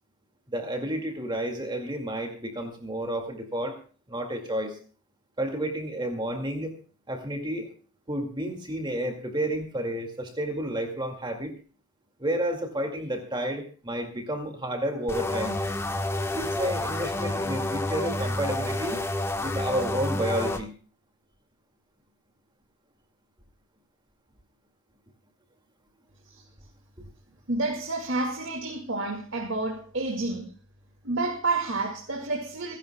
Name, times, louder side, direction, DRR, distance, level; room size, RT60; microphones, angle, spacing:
voice 1, 0.5-3.8 4.1-4.8 5.4-6.7 7.1-7.7 8.1-11.5 12.2-15.6 16.3-19.0 19.4-20.7, right 1 dB, 20° right, 2.1 m, -31 dB
sound 1, 15.1-20.6, left 2 dB, 10° left, 1.1 m, -29 dB
voice 2, 27.5-30.5 31.0-32.8, right 2 dB, 60° right, 2.1 m, -29 dB
28.0 x 10.5 x 2.2 m
head